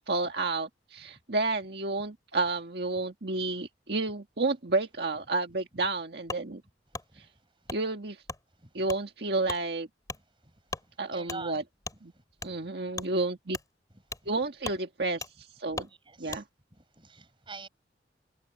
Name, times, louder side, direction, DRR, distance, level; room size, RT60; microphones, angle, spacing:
voice 1, 0.0-6.6 7.2-7.3 7.7-8.2 8.7-9.9 11.0-11.6 12.0-12.1 12.4-13.6 14.3-15.9 16.2-16.4, right 3 dB, 65° right, 1.7 m, -31 dB
Wood, 6.3-6.4 6.9-7.1 7.7-7.8 8.3-8.4 8.9-9.0 9.4-9.6 10.0-10.2 10.7-10.9 11.3-11.4 11.8-12.0 12.4-12.5 12.9-13.1 13.5-13.7 14.1-14.3 14.6-14.8 15.2-15.3 15.7-15.9 16.3-16.4, left 3 dB, 20° left, 3.9 m, -38 dB
voice 2, 11.1-11.6 12.4-12.7 15.9-16.4 16.7-17.7, right 3 dB, 30° right, 4.7 m, -45 dB
head